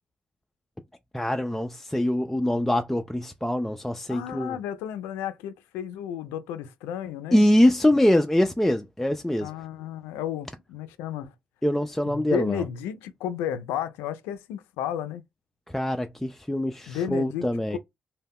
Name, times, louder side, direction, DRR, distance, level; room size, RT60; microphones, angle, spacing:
voice 1, 1.1-4.6 7.3-9.5 11.6-12.6 15.7-17.8, left 1 dB, 5° left, 0.3 m, -23 dB
voice 2, 4.1-7.4 9.4-11.3 12.1-15.2 16.9-17.8, left 9 dB, 90° left, 0.3 m, -33 dB
2.1 x 2.0 x 3.5 m
supercardioid pair, 55°, 4 cm